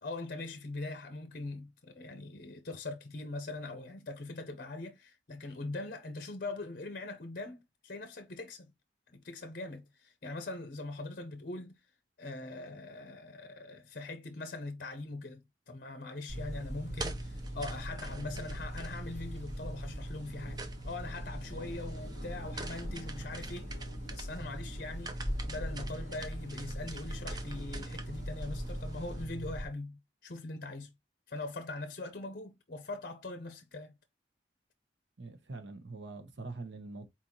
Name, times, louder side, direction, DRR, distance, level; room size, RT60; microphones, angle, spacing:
voice 1, 0.0-8.7 9.1-11.8 12.2-23.8 24.1-30.9 31.3-33.9, left 2 dB, 50° left, 0.7 m, -42 dB
sound 1, 16.3-29.6, right 1 dB, 20° right, 0.6 m, -42 dB
sound 2, 16.3-29.3, equal, 40° right, 2.8 m, -43 dB
voice 2, 35.2-37.1, right 3 dB, 85° right, 1.0 m, -44 dB
4.3 x 4.0 x 2.9 m
head